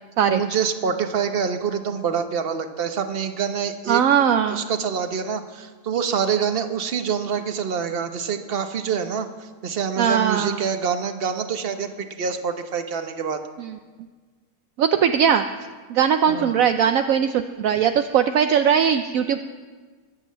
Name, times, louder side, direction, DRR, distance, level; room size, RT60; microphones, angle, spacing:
voice 1, 0.3-4.0 4.5-13.4 16.3-16.6, right 7 dB, 40° right, 7 dB, 1.2 m, -26 dB
voice 2, 3.9-4.6 10.0-10.6 13.6-13.8 14.8-15.5 15.9-19.4, right 8 dB, 70° right, 8 dB, 1.0 m, -20 dB
23.5 x 8.0 x 7.5 m, 1.5 s
omnidirectional pair, 1.6 m